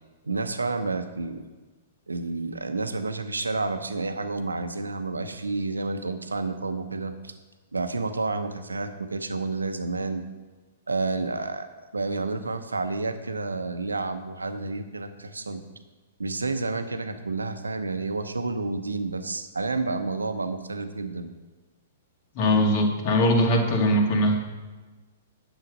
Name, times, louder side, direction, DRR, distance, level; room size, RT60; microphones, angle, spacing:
voice 1, 0.2-1.4 2.1-7.3 7.7-10.2 10.9-11.7 11.9-15.6 16.2-21.3, right 3 dB, 85° right, 9 dB, 0.9 m, -30 dB
voice 2, 22.3-24.4, equal, 45° left, 2 dB, 2.3 m, -21 dB
10.0 x 7.5 x 5.3 m, 1.3 s
figure-of-eight pair, 110°, 0 cm